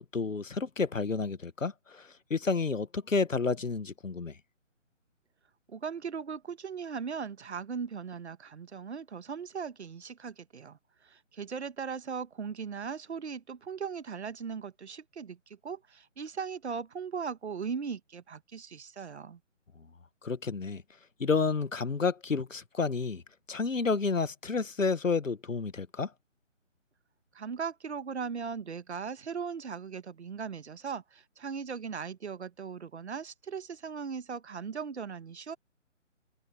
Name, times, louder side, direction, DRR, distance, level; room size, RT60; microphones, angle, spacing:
voice 1, 0.0-4.4 20.2-20.8 21.2-23.2 23.5-26.1, left 4 dB, 85° left, 1.5 m, -30 dB
voice 2, 5.7-19.4 27.3-35.6, right 6 dB, 60° right, 1.4 m, -38 dB
open air
figure-of-eight pair, 155°, 38 cm